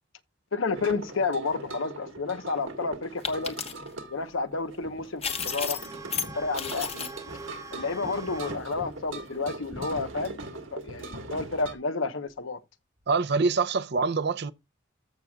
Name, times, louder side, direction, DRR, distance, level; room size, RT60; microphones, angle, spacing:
voice 1, 0.5-3.6 4.1-5.8 6.4-7.1 7.7-12.6, left 4 dB, 80° left, 1.0 m, -31 dB
sound 1, 0.7-11.7, right 2 dB, 80° right, 1.8 m, -40 dB
sound 2, 3.2-3.9 5.2-6.3 6.5-7.1, left 7 dB, 30° left, 1.2 m, -32 dB
sound 3, 5.3-8.6 8.9-9.0 9.8-10.0 12.2-12.3 13.0-13.1, right 3 dB, 15° right, 0.8 m, -44 dB
voice 2, 13.1-14.5, right 4 dB, 55° right, 0.6 m, -25 dB
14.5 x 6.3 x 2.3 m
head